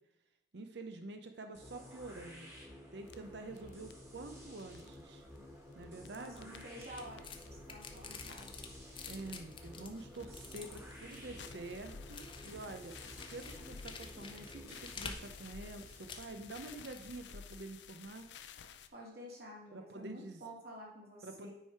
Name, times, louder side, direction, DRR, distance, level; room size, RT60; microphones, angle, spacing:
voice 1, 0.5-2.5 2.9-5.2 5.7-6.5 9.1-12.9 13.3-18.3 19.7-20.4 21.2-21.5, right 2 dB, 75° right, 7 dB, 0.7 m, -47 dB
sound 1, 1.5-17.4, left 1 dB, 15° right, 1.5 m, -53 dB
sound 2, 3.1-18.9, left 6 dB, 80° left, 0.5 m, -55 dB
voice 2, 6.1-8.5 18.9-21.5, equal, 60° right, -3 dB, 2.5 m, -50 dB
sound 3, 6.4-17.1, left 4 dB, 30° left, 0.7 m, -51 dB
9.0 x 4.6 x 4.7 m, 0.91 s
head